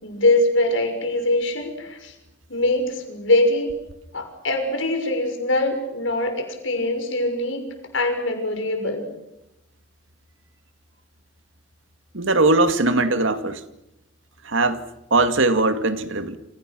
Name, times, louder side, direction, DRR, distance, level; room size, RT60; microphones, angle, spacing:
voice 1, 0.0-2.1 2.5-3.7 4.1-7.6 7.9-9.1, left 2 dB, 75° left, 6.3 m, -22 dB
voice 2, 12.1-13.6 14.4-14.8 15.1-16.4, right 2 dB, 75° right, 2.1 m, -20 dB
29.0 x 27.5 x 6.2 m
head